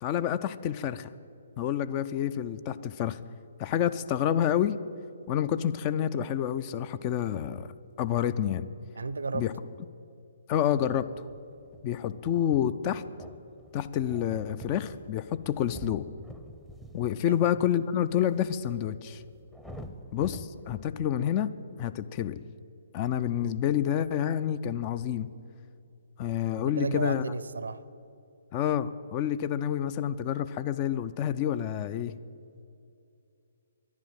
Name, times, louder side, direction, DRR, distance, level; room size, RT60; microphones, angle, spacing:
voice 1, 0.0-1.1 1.6-3.2 3.6-4.8 5.3-7.7 8.0-8.7 9.3-9.5 10.5-11.1 11.8-13.0 13.7-16.0 16.9-19.2 20.1-21.5 21.8-22.4 22.9-25.3 26.2-27.2 28.5-32.2, left 10 dB, 25° left, 14 dB, 0.4 m, -28 dB
voice 2, 8.9-9.5 17.3-17.4 26.8-27.8, right 4 dB, 65° right, 16 dB, 0.6 m, -33 dB
sound 1, 10.7-21.1, right 1 dB, 5° left, 0.7 m, -48 dB
10.5 x 10.5 x 8.9 m, 2.6 s
figure-of-eight pair, 130°, 0 cm